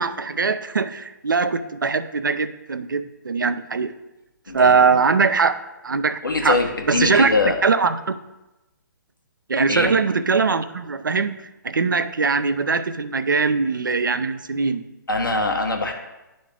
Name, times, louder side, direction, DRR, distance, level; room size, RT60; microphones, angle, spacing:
voice 1, 0.0-3.9 4.5-6.6 6.9-7.3 7.6-8.1 9.5-11.4 11.6-14.8, right 4 dB, 75° right, 12 dB, 0.5 m, -21 dB
voice 2, 4.5-4.8 6.2-7.6 9.7-9.9 15.1-15.9, left 3 dB, 85° left, 1 dB, 1.4 m, -22 dB
10.5 x 3.9 x 3.5 m, 1.0 s
figure-of-eight pair, 130°, 11 cm